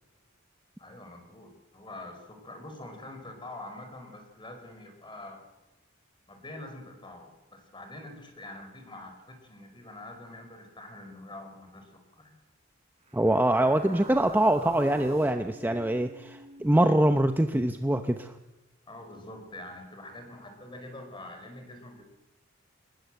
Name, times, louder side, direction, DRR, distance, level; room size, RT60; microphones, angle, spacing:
voice 1, 0.8-5.4 6.3-12.4 18.9-22.0, left 1 dB, 25° left, 5 dB, 5.1 m, -45 dB
voice 2, 13.1-18.3, right 1 dB, 10° right, 7 dB, 0.8 m, -24 dB
sound 1, 13.1-17.5, right 1 dB, 30° right, 4.9 m, -44 dB
24.5 x 20.0 x 7.9 m, 1.0 s
head